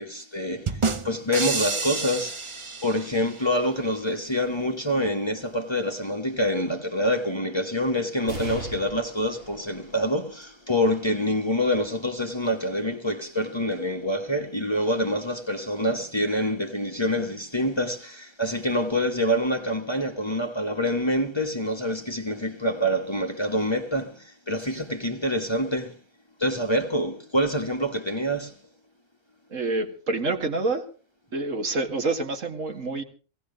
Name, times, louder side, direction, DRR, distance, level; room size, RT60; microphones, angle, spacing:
voice 1, 0.0-2.4 2.8-26.0 26.4-28.5, equal, 20° left, 1.2 m, -26 dB
sound 1, 0.7-3.5, right 4 dB, 30° right, 0.7 m, -29 dB
sound 2, 8.3-15.2 15.8-15.9 17.0-17.5, right 2 dB, 45° right, 5.6 m, -43 dB
voice 2, 29.5-30.9 31.3-33.0, right 3 dB, 75° right, 2.3 m, -27 dB
17.5 x 17.0 x 3.9 m
omnidirectional pair, 1.4 m